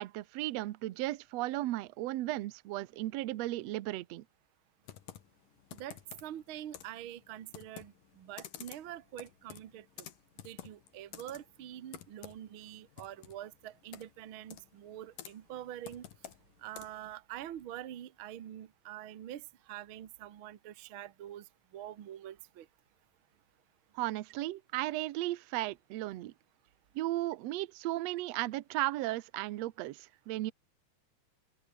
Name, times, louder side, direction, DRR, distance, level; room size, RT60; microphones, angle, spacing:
voice 1, 0.0-4.2 23.9-26.3 26.9-30.0 30.3-30.5, right 16 dB, 90° right, 1.4 m, -35 dB
Computer keyboard, 4.8-17.1, left 11 dB, 65° left, 3.3 m, -52 dB
voice 2, 5.7-10.1 10.4-16.0 16.6-22.7, right 12 dB, 55° right, 1.4 m, -45 dB
open air
omnidirectional pair, 4.2 m